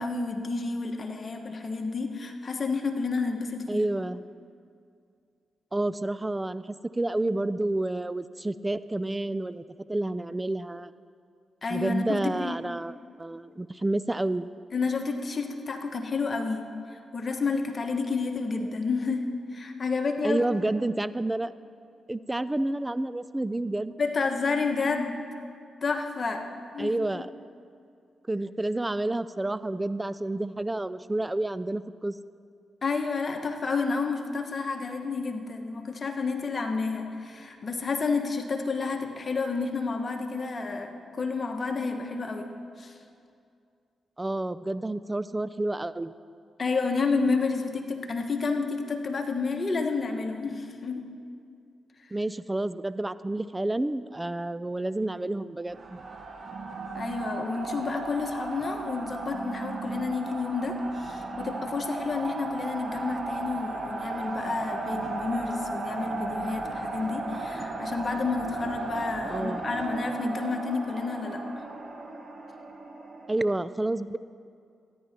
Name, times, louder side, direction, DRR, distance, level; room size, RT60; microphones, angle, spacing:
voice 1, 0.0-3.8 11.6-12.5 14.7-16.6 16.9-19.3 19.5-20.4 24.0-25.2 25.8-26.4 26.7-27.2 32.8-42.5 42.8-42.9 46.6-51.0 56.9-71.4, left 4 dB, 45° left, 4 dB, 1.3 m, -30 dB
voice 2, 3.7-4.2 5.7-9.6 9.9-10.9 11.7-12.9 13.2-14.5 20.2-21.5 22.1-23.9 26.8-27.3 28.3-32.1 44.2-46.1 52.1-56.0 69.3-69.6 73.3-74.2, right 2 dB, 20° right, 16 dB, 0.4 m, -29 dB
sound 1, 55.7-73.4, right 3 dB, 55° right, 1.4 m, -35 dB
13.5 x 10.0 x 4.4 m, 2.4 s
supercardioid pair, 50°, 0 cm